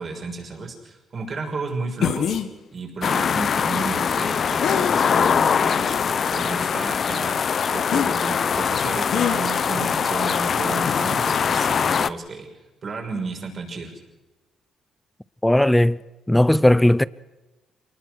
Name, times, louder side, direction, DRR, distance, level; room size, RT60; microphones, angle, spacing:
voice 1, 0.0-2.3 2.7-6.0 6.3-12.5 12.8-14.0, right 4 dB, 45° right, 6.3 m, -33 dB
sound 1, 2.0-2.5 4.6-5.3 5.9-6.0 7.9-8.1 9.1-9.4, left 8 dB, 70° left, 1.8 m, -24 dB
sound 2, 3.0-12.1, left 6 dB, 50° left, 0.8 m, -22 dB
voice 2, 15.4-16.0 16.3-17.1, left 1 dB, 5° left, 0.7 m, -16 dB
25.0 x 19.5 x 6.3 m
cardioid pair, 90°, 0 cm